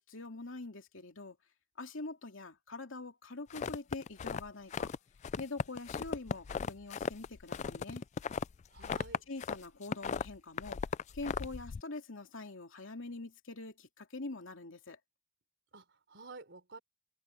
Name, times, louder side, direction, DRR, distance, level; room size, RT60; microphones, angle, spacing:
voice 1, 0.0-1.4 1.8-4.9 5.4-8.0 9.3-10.8 11.1-15.0, left 3 dB, 85° left, 2.6 m, -44 dB
sound 1, 3.5-5.0 5.2-9.6 9.8-11.8, left 6 dB, 35° left, 0.3 m, -37 dB
voice 2, 8.7-9.2 15.7-16.8, right 3 dB, 65° right, 3.9 m, -51 dB
head